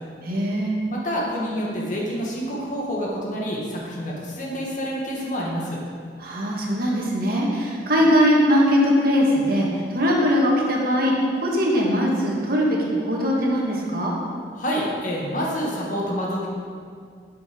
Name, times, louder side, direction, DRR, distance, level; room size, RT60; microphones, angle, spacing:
voice 1, 0.2-0.7 6.2-11.1 11.4-14.2, equal, 60° right, -3 dB, 2.0 m, -21 dB
voice 2, 0.9-5.8 14.5-16.5, equal, 50° left, -3 dB, 2.1 m, -27 dB
9.9 x 7.1 x 5.5 m, 2.1 s
head